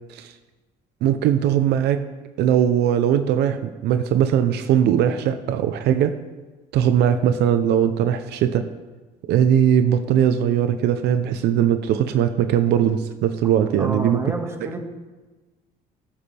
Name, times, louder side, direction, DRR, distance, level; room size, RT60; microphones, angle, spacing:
voice 1, 1.0-2.0 2.4-6.2 6.7-8.7 9.2-14.2, right 9 dB, 80° right, 10 dB, 0.7 m, -20 dB
voice 2, 13.8-14.8, right 2 dB, 15° right, 3 dB, 1.8 m, -29 dB
18.5 x 7.6 x 3.4 m, 1.2 s
cardioid pair, 110°, 17 cm